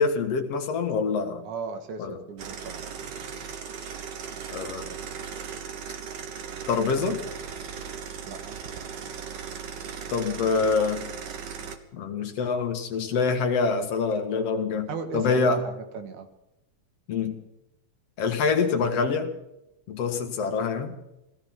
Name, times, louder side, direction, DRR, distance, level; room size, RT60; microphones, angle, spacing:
voice 1, 0.0-1.4 2.0-2.2 4.5-5.0 6.7-7.2 10.1-11.0 11.9-15.6 17.1-17.4 18.2-19.3 19.9-21.0, left 5 dB, 55° left, 5 dB, 2.6 m, -25 dB
voice 2, 1.4-2.9 8.3-8.6 14.9-16.3, right 5 dB, 75° right, 7 dB, 3.0 m, -36 dB
sound 1, 2.4-11.8, right 7 dB, 55° right, 1.3 m, -37 dB
17.0 x 14.5 x 5.9 m, 0.89 s
omnidirectional pair, 3.5 m